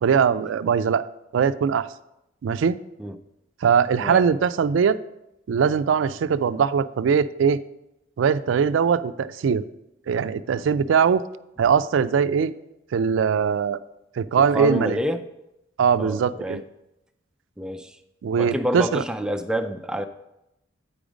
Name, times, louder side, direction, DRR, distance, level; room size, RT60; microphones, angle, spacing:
voice 1, 0.0-1.0 1.3-1.9 2.4-2.8 3.6-5.0 5.5-7.6 8.2-9.7 10.1-11.2 11.6-12.5 12.9-13.8 14.2-15.0 15.8-16.6 18.2-19.0, right 6 dB, 80° right, 15 dB, 0.3 m, -21 dB
voice 2, 14.4-15.2 16.0-16.6 17.6-18.0 18.4-20.1, equal, 5° right, 7 dB, 0.4 m, -28 dB
8.6 x 5.1 x 5.0 m, 0.88 s
head